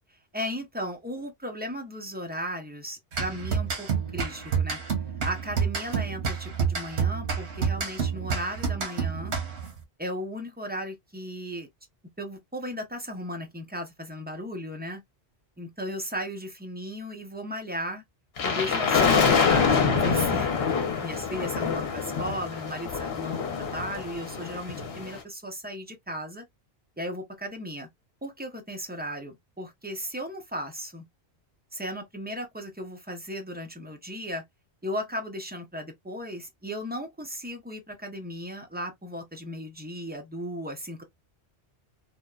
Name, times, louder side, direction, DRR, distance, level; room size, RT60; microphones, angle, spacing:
voice 1, 0.1-4.8 5.2-9.3 10.0-11.7 12.2-15.0 15.6-18.0 18.4-20.5 20.8-26.4 27.0-27.9 28.2-31.0 31.7-34.4 34.8-41.0, equal, 15° right, 0.4 m, -36 dB
sound 1, 3.1-9.8, right 6 dB, 85° right, 1.1 m, -29 dB
sound 2, 18.4-25.2, left 5 dB, 70° left, 0.9 m, -25 dB
2.9 x 2.1 x 2.2 m
omnidirectional pair, 1.1 m